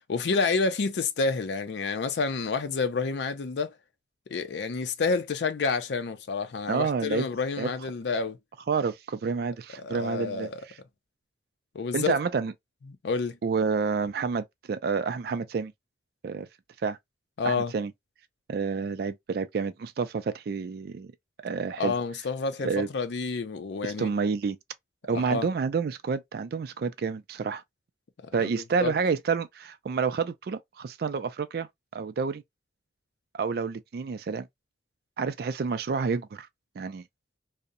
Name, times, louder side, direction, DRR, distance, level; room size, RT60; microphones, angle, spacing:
voice 1, 0.1-3.7 4.3-8.4 9.8-10.6 11.7-12.2 13.0-13.4 17.4-17.7 21.8-24.1 25.1-25.5 28.4-28.9, left 4 dB, 75° left, 0.4 m, -29 dB
voice 2, 6.7-7.3 7.6-7.7 8.7-10.7 11.9-12.5 13.4-15.7 16.2-16.5 16.8-17.0 17.4-17.9 18.5-21.1 21.4-21.9 22.6-22.9 23.8-24.6 25.0-27.6 28.3-31.7 31.9-32.4 33.3-34.5 35.2-36.5 36.8-37.0, right 5 dB, 55° right, 0.3 m, -29 dB
2.7 x 2.0 x 2.4 m
head